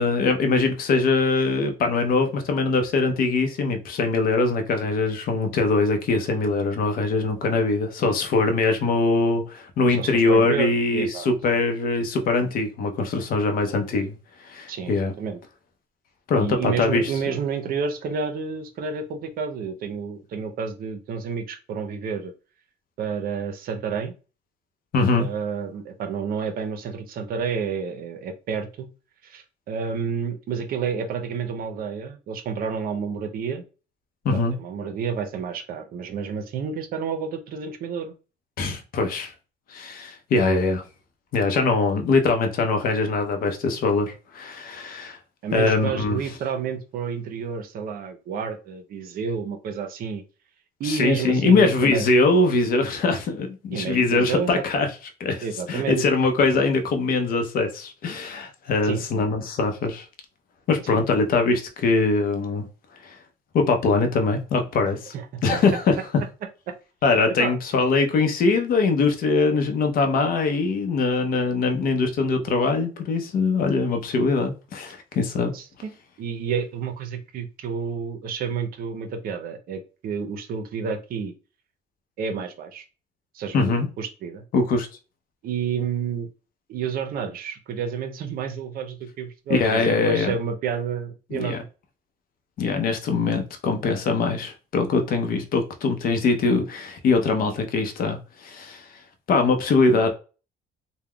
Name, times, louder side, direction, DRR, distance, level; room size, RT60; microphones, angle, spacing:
voice 1, 0.0-14.1 14.4-15.1 16.3-17.1 24.9-25.3 34.2-34.5 38.6-39.3 39.7-40.8 41.3-45.2 45.5-46.2 50.8-54.9 55.2-60.0 60.7-62.6 63.0-63.1 63.5-65.1 65.4-65.9 67.0-75.5 83.5-83.9 84.5-84.9 89.5-90.3 91.3-91.6 92.6-98.9 99.3-100.1, left 3 dB, 60° left, 0.6 m, -22 dB
voice 2, 9.9-11.3 14.7-15.4 16.4-22.3 23.0-24.1 25.2-28.9 29.2-33.6 34.3-38.1 45.4-50.2 50.8-52.1 53.7-54.6 55.4-56.0 58.8-59.0 60.9-61.0 65.1-65.2 65.5-65.6 67.4-67.5 75.5-75.9 76.2-81.3 82.2-82.8 83.3-84.4 85.4-86.3 86.7-91.7, right 6 dB, 60° right, 0.6 m, -30 dB
3.4 x 2.1 x 2.2 m
cardioid pair, 110°, 17 cm